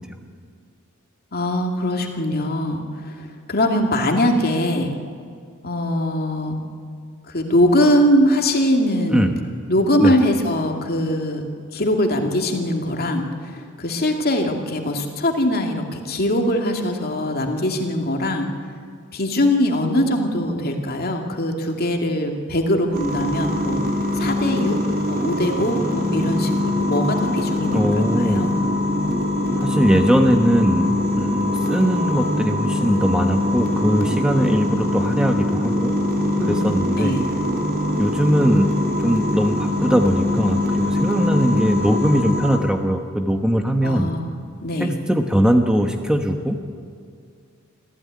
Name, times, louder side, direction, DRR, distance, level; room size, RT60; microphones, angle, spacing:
voice 1, 1.3-4.9 5.6-6.6 7.3-9.3 9.7-11.4 11.7-18.5 19.1-23.8 24.1-24.8 25.1-28.5 36.4-37.3 43.8-44.3 44.6-44.9, left 1 dB, 45° left, 3 dB, 2.4 m, -22 dB
sound 1, 22.9-42.6, left 1 dB, 45° right, 3.4 m, -23 dB
voice 2, 27.7-28.4 29.6-35.9 36.4-37.1 38.0-38.7 39.0-44.1 44.8-46.6, equal, 5° right, 4 dB, 1.1 m, -20 dB
25.5 x 15.5 x 9.5 m, 2.2 s
head